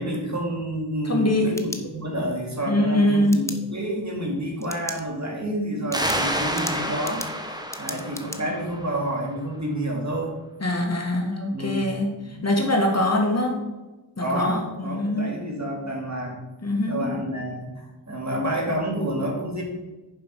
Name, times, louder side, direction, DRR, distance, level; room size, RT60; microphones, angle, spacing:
voice 1, 0.0-3.4 3.7-7.2 7.8-10.3 11.5-12.0 12.2-12.5 14.2-16.4 16.9-17.7 18.1-19.6, right 1 dB, 40° right, 0 dB, 2.5 m, -29 dB
voice 2, 1.0-1.6 2.7-3.4 10.6-13.6 14.2-15.3 16.6-17.1, left 1 dB, 35° left, 2 dB, 1.6 m, -23 dB
sound 1, 1.2-2.4 3.3-3.6 4.6-5.0 5.4-5.5 5.9-8.4, left 1 dB, 5° left, 0.9 m, -36 dB
sound 2, 5.9-9.3, equal, 10° right, 1.4 m, -29 dB
7.3 x 5.3 x 6.1 m, 1.1 s
cardioid pair, 60°, 44 cm